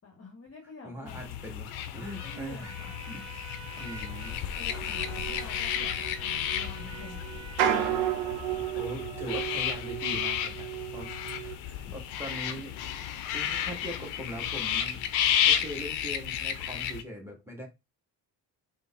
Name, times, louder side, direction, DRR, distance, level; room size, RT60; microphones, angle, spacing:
voice 1, 0.0-1.2 2.0-2.9 4.6-7.2 12.3-12.4, left 4 dB, 30° left, 0.9 m, -48 dB
voice 2, 0.8-2.7 3.1-3.3 3.8-4.4 8.7-11.1 11.4-12.7 13.3-15.0 15.4-17.7, equal, 5° right, 1.4 m, -41 dB
sound 1, 1.1-17.0, left 9 dB, 80° left, 0.5 m, -32 dB
Trumpet, 2.0-8.4, right 5 dB, 35° right, 0.9 m, -49 dB
sound 2, 4.7-11.6, right 10 dB, 80° right, 0.7 m, -33 dB
3.8 x 2.1 x 2.4 m
hypercardioid pair, 50°, 47 cm